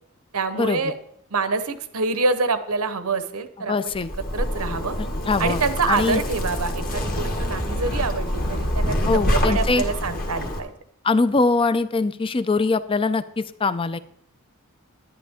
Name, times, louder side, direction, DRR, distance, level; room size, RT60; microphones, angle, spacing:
voice 1, 0.3-0.9 1.3-3.9 4.3-4.9 5.4-10.7, right 4 dB, 80° right, 11 dB, 0.9 m, -26 dB
voice 2, 3.7-4.1 5.2-5.6 5.9-6.2 9.1-9.8 11.0-14.0, left 3 dB, 25° left, 14 dB, 0.5 m, -22 dB
Zipper (clothing), 3.9-10.6, equal, 40° left, 1.7 m, -26 dB
11.0 x 11.0 x 3.6 m, 0.72 s
head